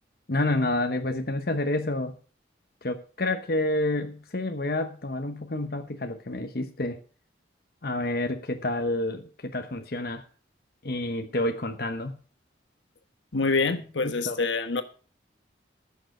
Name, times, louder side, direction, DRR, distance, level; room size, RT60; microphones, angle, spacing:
voice 1, 0.3-2.2 2.8-7.0 7.8-10.3 10.8-12.2 14.0-14.4, left 2 dB, 50° left, 1.0 m, -29 dB
voice 2, 13.3-14.8, left 4 dB, 80° left, 1.3 m, -26 dB
14.0 x 6.7 x 6.4 m
head